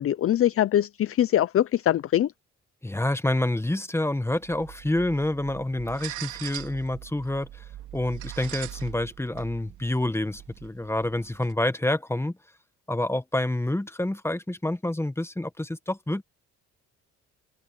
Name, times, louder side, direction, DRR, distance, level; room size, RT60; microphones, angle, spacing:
voice 1, 0.0-2.3, left 11 dB, 50° left, 0.6 m, -23 dB
voice 2, 2.8-7.6 7.9-12.3 12.9-16.2, left 1 dB, 10° left, 1.2 m, -28 dB
sound 1, 4.3-11.5, right 13 dB, 85° right, 2.9 m, -42 dB
open air
cardioid pair, 90°, 30 cm